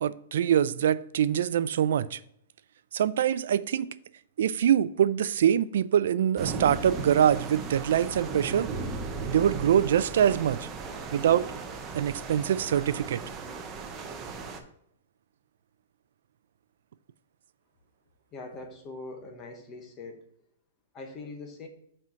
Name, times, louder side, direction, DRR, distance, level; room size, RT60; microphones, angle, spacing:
voice 1, 0.0-2.2 2.9-3.9 4.4-8.7 9.2-10.7 11.1-11.5 11.9-13.2, right 9 dB, 60° right, 0.3 m, -24 dB
sound 1, 6.4-14.6, right 4 dB, 15° right, 0.6 m, -37 dB
voice 2, 18.3-20.3 20.9-21.7, left 3 dB, 15° left, 0.9 m, -42 dB
6.1 x 4.5 x 5.7 m
hypercardioid pair, 175°, 0 cm